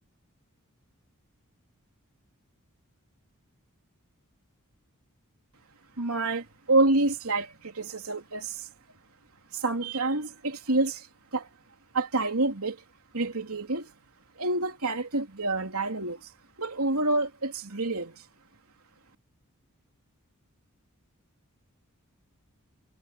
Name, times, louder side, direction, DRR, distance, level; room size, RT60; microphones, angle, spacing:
voice 1, 6.0-8.7 9.5-11.1 11.3-11.5 11.9-12.8 13.1-13.9 14.4-16.3 16.6-18.2, right 2 dB, 80° right, 3.3 m, -28 dB
head